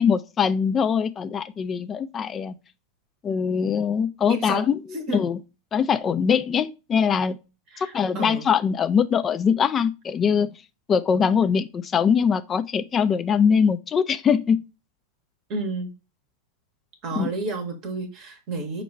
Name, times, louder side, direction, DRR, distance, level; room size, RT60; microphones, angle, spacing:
voice 1, 0.0-2.5 3.2-4.8 5.1-5.4 5.7-7.4 7.8-10.6 10.9-14.6 17.2-17.3, left 7 dB, 25° left, 0.3 m, -22 dB
voice 2, 4.3-5.2 7.7-8.5 15.5-15.9 17.0-18.8, right 2 dB, 40° right, 0.8 m, -31 dB
5.3 x 2.3 x 4.1 m
figure-of-eight pair, 90°, 0 cm